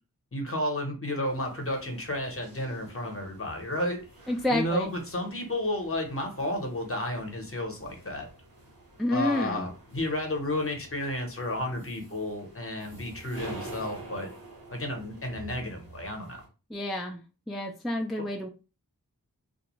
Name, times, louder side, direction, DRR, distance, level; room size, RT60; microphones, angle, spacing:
voice 1, 0.3-4.0 4.5-8.3 9.1-14.3 14.7-16.4 18.2-18.3, left 1 dB, 40° left, 2 dB, 0.8 m, -32 dB
sound 1, 1.2-16.5, right 2 dB, 75° right, 1.0 m, -48 dB
voice 2, 4.3-4.9 9.0-9.7 16.7-17.2 17.5-18.5, left 1 dB, ahead, 1 dB, 0.3 m, -29 dB
2.4 x 2.1 x 2.9 m, 0.32 s
wide cardioid pair, 75°, 36 cm